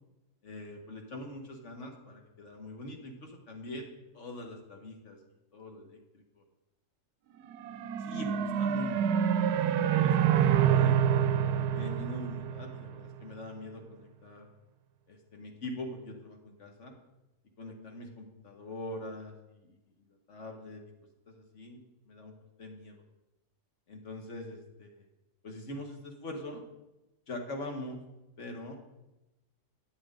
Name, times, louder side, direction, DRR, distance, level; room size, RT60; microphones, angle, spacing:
voice 1, 0.4-3.8 4.1-5.2 5.5-6.2 8.0-10.9 11.5-14.5 15.1-17.0 17.6-19.8 20.1-20.8 21.3-21.8 22.1-22.3 22.6-23.0 23.9-25.1 25.4-26.6 27.3-28.0 28.4-29.0, left 1 dB, 50° left, 3 dB, 1.8 m, -43 dB
sound 1, 7.5-13.0, right 9 dB, 80° right, 1.1 m, -27 dB
12.5 x 9.0 x 3.9 m, 0.97 s
omnidirectional pair, 1.7 m